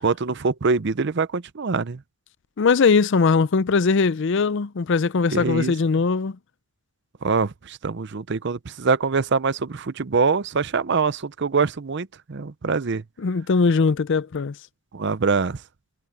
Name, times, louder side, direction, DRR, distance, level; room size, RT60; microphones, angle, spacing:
voice 1, 0.0-2.0 5.3-5.7 7.2-13.0 14.9-15.6, right 4 dB, 60° right, 0.6 m, -24 dB
voice 2, 2.6-6.4 13.2-14.5, left 4 dB, 60° left, 0.5 m, -20 dB
head